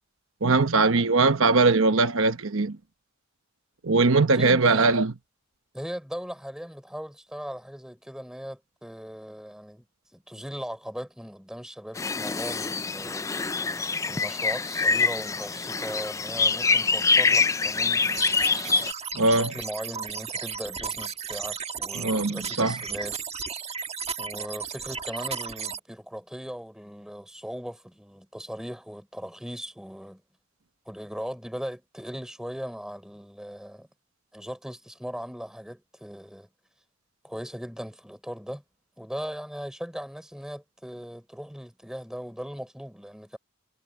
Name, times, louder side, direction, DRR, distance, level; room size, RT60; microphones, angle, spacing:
voice 1, 0.4-2.8 3.8-5.1 19.1-19.5 22.0-22.7, right 3 dB, 65° right, 1.0 m, -21 dB
voice 2, 4.3-5.0 5.7-9.8 10.1-13.6 14.1-18.6 18.8-19.0 19.3-23.1 24.2-30.2 30.9-33.9 34.3-36.5 37.2-38.6 39.0-43.4, equal, 5° right, 3.7 m, -38 dB
sound 1, 12.0-18.9, left 4 dB, 15° left, 0.4 m, -25 dB
sound 2, 18.0-25.8, right 6 dB, 30° right, 1.4 m, -34 dB
head